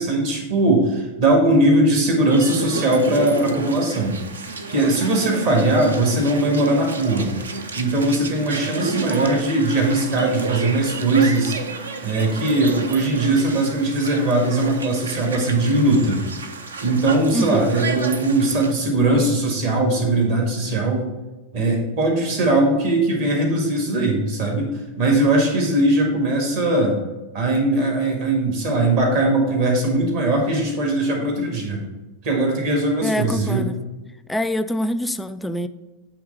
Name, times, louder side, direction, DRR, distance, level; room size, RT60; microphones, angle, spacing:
voice 1, 0.0-4.2 4.7-7.4 7.7-11.6 12.0-16.2 16.8-21.1 21.5-24.7 25.0-27.0 27.3-31.9 32.2-33.6, right 2 dB, 50° right, 1 dB, 1.8 m, -20 dB
sound 1, 2.3-18.7, right 4 dB, 70° right, 0.6 m, -31 dB
voice 2, 17.3-17.7 33.0-33.8 34.3-35.7, equal, 5° left, 12 dB, 0.4 m, -25 dB
8.5 x 3.4 x 5.5 m, 1.1 s
figure-of-eight pair, 90°, 0 cm